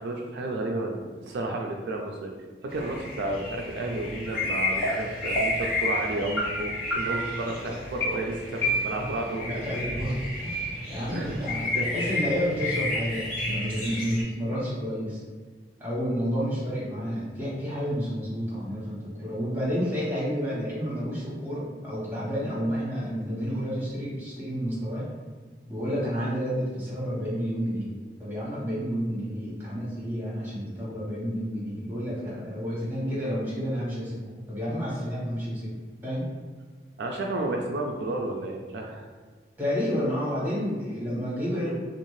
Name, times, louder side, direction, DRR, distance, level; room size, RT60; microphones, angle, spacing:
voice 1, 0.0-2.3 2.6-9.6 11.1-11.4 11.7-11.9 37.0-39.1, right 2 dB, 70° right, 1 dB, 0.3 m, -32 dB
sound 1, 2.7-14.2, left 2 dB, 45° left, 1.2 m, -32 dB
sound 2, 4.8-4.9 5.3-5.7 6.4-6.5 6.9-7.4 8.0-8.1 8.6-9.2, right 1 dB, 75° left, 1.3 m, -28 dB
voice 2, 9.3-11.6 11.9-15.2 15.8-25.0 25.7-27.9 28.2-34.2 34.5-35.8 36.0-36.3 39.6-41.7, equal, 10° right, -8 dB, 1.2 m, -30 dB
2.6 x 2.4 x 3.1 m, 1.5 s
head